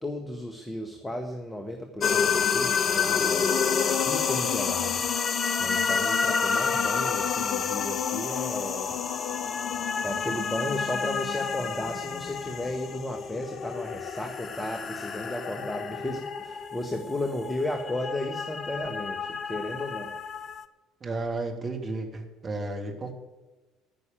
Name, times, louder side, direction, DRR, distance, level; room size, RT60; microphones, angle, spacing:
voice 1, 0.0-3.5 4.0-5.1 5.6-9.1 10.0-20.1, left 1 dB, 15° left, 4 dB, 1.6 m, -34 dB
sound 1, 2.0-20.6, left 6 dB, 40° left, 0.7 m, -29 dB
voice 2, 21.0-23.1, right 2 dB, 30° right, 2 dB, 2.7 m, -33 dB
15.0 x 6.4 x 9.0 m, 1.2 s
figure-of-eight pair, 60°, 0 cm